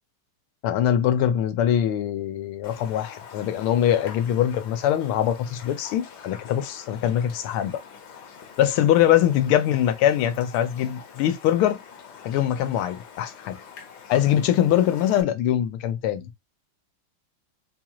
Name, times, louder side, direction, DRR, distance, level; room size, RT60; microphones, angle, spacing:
voice 1, 0.6-7.8 8.6-11.8 12.2-13.5 14.1-16.3, left 11 dB, 90° left, 1.5 m, -22 dB
Raindrop, 2.6-15.2, left 7 dB, 60° left, 1.3 m, -45 dB
4.3 x 2.4 x 2.9 m
omnidirectional pair, 2.3 m